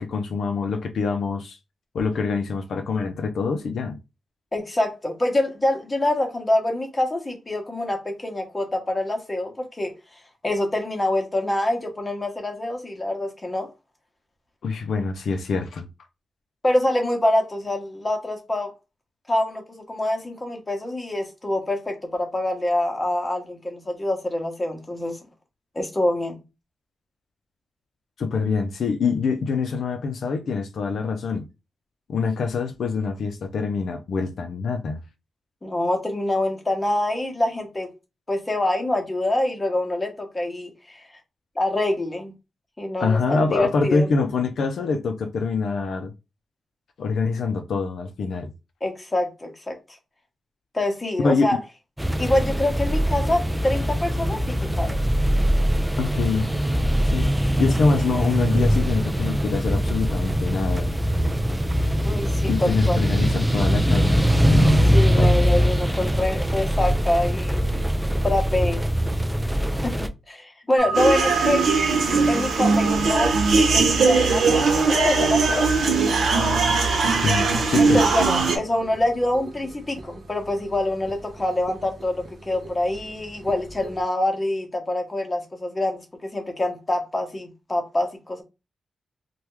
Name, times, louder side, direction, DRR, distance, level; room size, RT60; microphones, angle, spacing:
voice 1, 0.0-1.6 1.9-4.0 14.6-15.9 28.2-31.5 32.1-35.0 43.0-46.1 47.0-48.5 51.2-51.5 56.0-56.5 57.0-57.3 57.6-60.9 62.5-64.9 65.2-65.4 77.1-78.1, left 4 dB, 70° left, 0.4 m, -25 dB
voice 2, 4.5-9.9 10.4-13.7 16.6-18.7 19.3-25.2 25.7-26.4 35.6-37.9 38.3-41.0 41.6-42.3 42.8-44.1 48.8-49.7 50.7-51.6 52.2-55.0 62.0-63.0 64.9-67.6 68.2-68.8 69.8-71.6 72.3-73.3 73.7-75.7 77.8-88.4, left 1 dB, 15° left, 0.8 m, -25 dB
sound 1, 52.0-70.1, equal, 5° right, 0.3 m, -22 dB
sound 2, 70.8-84.0, right 4 dB, 50° right, 0.6 m, -35 dB
sound 3, 70.9-78.6, right 4 dB, 85° right, 0.8 m, -20 dB
3.3 x 2.2 x 3.0 m
wide cardioid pair, 155°, 0 cm